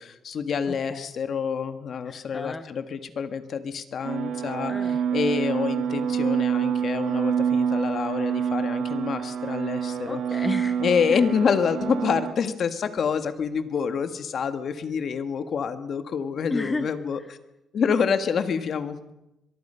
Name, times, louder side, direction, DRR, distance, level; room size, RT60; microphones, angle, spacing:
voice 1, 0.0-10.2 10.8-17.2 17.7-19.1, left 6 dB, 50° left, 10 dB, 1.6 m, -27 dB
voice 2, 0.7-1.1 2.0-2.7 4.7-5.0 10.0-10.8 11.1-11.2 16.4-16.9, left 2 dB, 15° left, 9 dB, 0.9 m, -33 dB
sound 1, 4.0-12.3, right 7 dB, 65° right, 1.6 m, -27 dB
23.5 x 23.0 x 5.7 m, 0.90 s
cardioid pair, 150°, 0 cm